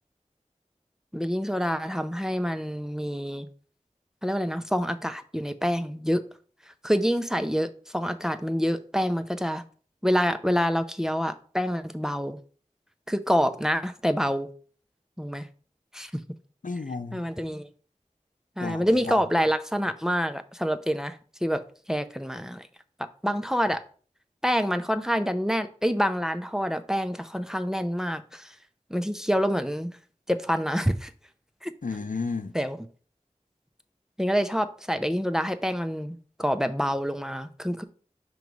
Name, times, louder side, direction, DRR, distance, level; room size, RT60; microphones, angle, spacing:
voice 1, 1.1-3.5 4.2-6.2 6.8-9.6 10.0-12.4 13.1-14.5 15.2-15.5 15.9-16.2 17.1-17.7 18.6-22.7 23.0-23.8 24.4-28.5 28.9-29.9 30.3-31.1 31.6-31.7 32.5-32.8 34.2-37.8, equal, 5° right, 0.5 m, -27 dB
voice 2, 16.6-17.3 18.6-19.2 31.8-32.5, left 4 dB, 85° left, 0.6 m, -32 dB
5.9 x 3.1 x 5.2 m
wide cardioid pair, 40°, 13 cm